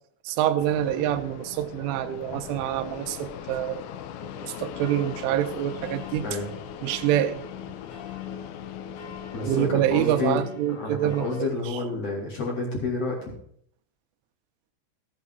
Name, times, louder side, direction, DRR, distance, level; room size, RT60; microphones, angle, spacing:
voice 1, 0.3-3.8 4.4-6.2 6.8-7.4 9.5-11.5, right 12 dB, 80° right, 8 dB, 3.1 m, -26 dB
Fixed-wing aircraft airplane, 0.6-9.7, left 10 dB, 85° left, 3.4 m, -40 dB
sound 1, 4.2-11.4, left 7 dB, 60° left, 2.2 m, -42 dB
voice 2, 9.3-13.3, left 3 dB, 35° left, -2 dB, 3.3 m, -30 dB
15.5 x 8.5 x 3.8 m, 0.66 s
omnidirectional pair, 5.9 m